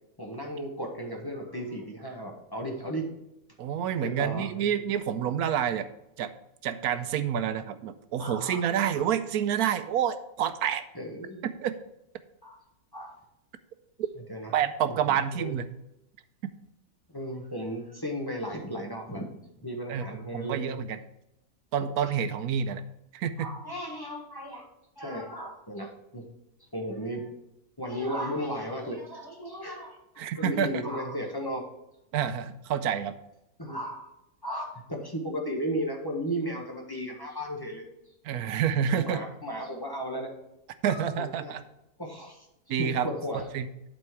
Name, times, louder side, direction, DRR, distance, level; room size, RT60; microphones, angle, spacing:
voice 1, 0.2-3.1 4.0-4.7 8.2-8.7 8.9-9.0 10.9-11.4 12.4-12.6 12.9-13.1 14.3-14.5 15.4-15.5 17.1-19.3 19.6-20.6 23.4-24.7 25.0-26.2 26.7-27.3 27.8-31.6 33.6-34.1 34.4-37.8 38.9-40.3 40.8-41.5 42.0-42.5 42.8-43.5, equal, 15° left, 0 dB, 1.3 m, -35 dB
voice 2, 3.6-5.9 6.2-6.3 6.6-10.8 11.4-11.7 14.5-15.7 19.9-20.1 20.3-21.0 21.7-22.8 23.1-23.5 30.2-30.7 32.1-33.2 38.2-39.2 40.8-41.6 42.7-43.1 43.3-43.7, right 8 dB, 85° right, 11 dB, 1.1 m, -28 dB
11.5 x 4.2 x 4.6 m, 0.88 s
omnidirectional pair, 1.6 m